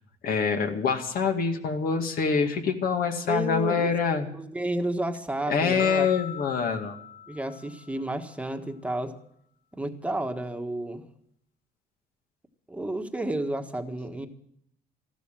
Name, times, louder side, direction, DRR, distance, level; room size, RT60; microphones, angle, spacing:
voice 1, 0.2-4.3 5.5-7.0, left 5 dB, 60° left, 5 dB, 2.2 m, -25 dB
voice 2, 3.3-3.9 4.4-6.1 7.3-9.1 9.7-11.0 12.7-14.3, right 1 dB, 5° right, 6 dB, 1.5 m, -31 dB
sound 1, 5.8-8.2, left 10 dB, 75° left, 2.0 m, -40 dB
14.0 x 12.5 x 7.4 m, 0.71 s
cardioid pair, 110°, 17 cm